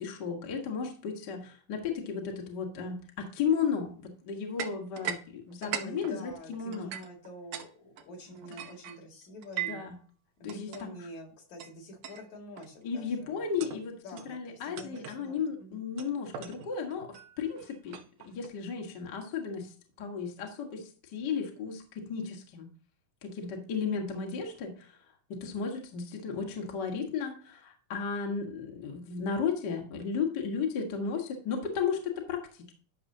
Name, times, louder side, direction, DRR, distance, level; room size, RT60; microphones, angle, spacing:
voice 1, 0.0-6.9 8.3-8.4 9.7-9.9 10.4-10.9 12.8-14.0 14.3-18.0 18.2-22.7 23.2-25.0 25.3-32.7, left 6 dB, 40° left, 1 dB, 1.8 m, -34 dB
sound 1, 4.6-5.2 5.5-7.7 8.0-9.9 10.5-10.8 11.6-11.7 12.0-12.3 12.6-12.9 13.4-13.8 14.2-14.4 14.8-15.2 16.0-18.5, right 9 dB, 80° right, 2.5 m, -40 dB
voice 2, 5.6-9.8 10.4-15.9, equal, 65° left, 2 dB, 3.6 m, -47 dB
12.0 x 6.8 x 2.8 m, 0.42 s
omnidirectional pair, 3.6 m